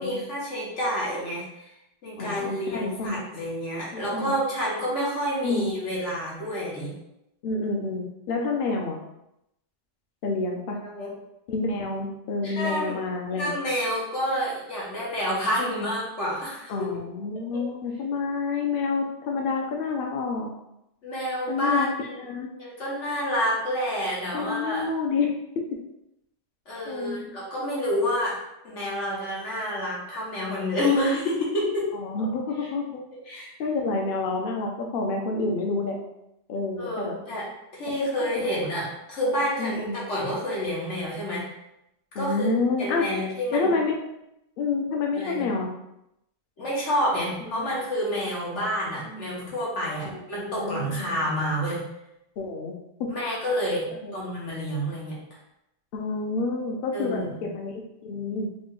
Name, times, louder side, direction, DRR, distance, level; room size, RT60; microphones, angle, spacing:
voice 1, 0.0-1.4 2.0-6.9 10.8-11.1 12.4-12.9 13.3-16.9 17.5-17.6 21.0-22.2 22.5-24.8 26.7-28.4 28.6-31.9 32.6-32.7 33.3-33.5 36.8-37.5 37.7-41.4 42.2-42.5 42.8-43.7 45.1-45.4 46.6-51.8 53.1-53.9 54.1-55.2 56.9-57.4, equal, 90° left, -6 dB, 1.6 m, -28 dB
voice 2, 2.2-3.2 3.9-4.3 5.4-5.7 7.4-9.0 10.2-10.8 11.5-13.5 16.7-20.5 21.5-21.9 22.2-22.5 24.3-25.3 25.6-25.7 26.8-27.3 31.9-33.0 33.6-36.0 36.5-37.1 38.2-38.5 39.6-40.1 42.1-43.1 43.5-44.0 44.6-45.7 47.6-47.7 48.3-48.6 49.1-49.3 50.3-51.1 52.4-52.7 53.0-53.1 54.0-54.2 55.9-58.5, left 3 dB, 60° left, 1 dB, 0.7 m, -28 dB
3.7 x 2.1 x 3.7 m, 0.84 s
omnidirectional pair, 1.2 m